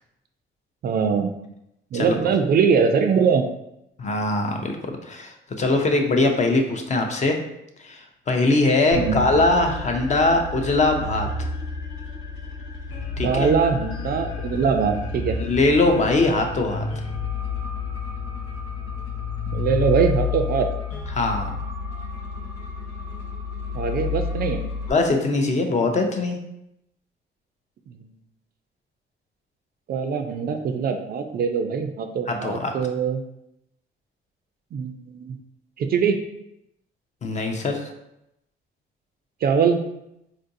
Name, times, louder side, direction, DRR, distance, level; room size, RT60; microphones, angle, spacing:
voice 1, 0.8-1.3 1.9-3.5 8.9-9.2 13.2-15.4 19.5-20.7 23.7-24.6 29.9-33.2 34.7-35.4 35.8-36.2 39.4-39.8, right 6 dB, 50° right, 6 dB, 0.4 m, -22 dB
voice 2, 4.0-7.4 7.8-11.5 13.2-13.5 15.4-16.8 21.1-21.5 24.9-26.4 32.3-32.7 37.2-37.9, left 2 dB, 35° left, 4 dB, 0.5 m, -22 dB
sound 1, 8.9-24.9, left 5 dB, 85° left, 0.7 m, -30 dB
3.8 x 2.5 x 2.6 m, 0.83 s
cardioid pair, 90°, 20 cm